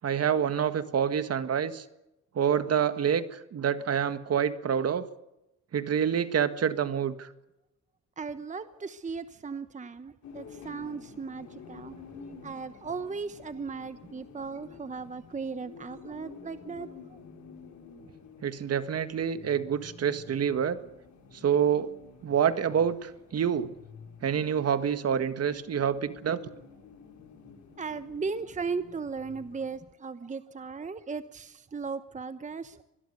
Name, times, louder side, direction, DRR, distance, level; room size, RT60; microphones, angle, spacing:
voice 1, 0.0-1.8 2.4-5.1 5.7-7.3 18.4-20.8 21.4-21.9 22.2-23.7 24.2-26.4, right 8 dB, 55° right, 10 dB, 1.7 m, -27 dB
voice 2, 8.2-12.0 12.4-17.2 27.8-32.8, right 5 dB, 25° right, 11 dB, 1.1 m, -37 dB
sound 1, 10.2-29.8, left 5 dB, 70° left, 5.8 m, -50 dB
24.0 x 21.0 x 6.8 m, 0.94 s
cardioid pair, 90°, 30 cm